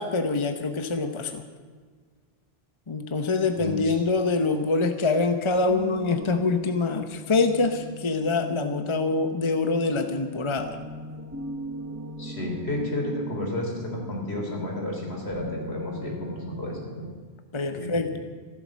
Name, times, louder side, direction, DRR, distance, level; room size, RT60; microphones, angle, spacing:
voice 1, 0.0-1.4 2.9-10.8 17.5-18.2, left 3 dB, 30° left, 7 dB, 1.0 m, -25 dB
voice 2, 3.6-4.0 12.2-17.1 17.7-18.1, left 1 dB, 75° left, 0 dB, 4.0 m, -32 dB
sound 1, 5.5-17.1, equal, 15° right, 1.3 m, -40 dB
14.5 x 12.5 x 7.5 m, 1.6 s
omnidirectional pair, 1.1 m